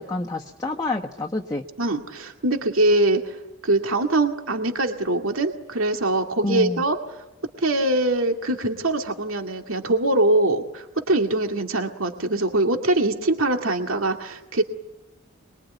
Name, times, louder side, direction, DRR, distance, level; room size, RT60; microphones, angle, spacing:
voice 1, 0.0-1.6 6.4-6.8, left 2 dB, 20° left, 1 dB, 1.1 m, -28 dB
voice 2, 1.8-3.4 3.6-7.0 7.6-14.6, right 2 dB, 80° right, 4 dB, 2.3 m, -23 dB
26.5 x 22.5 x 9.4 m, 1.0 s
head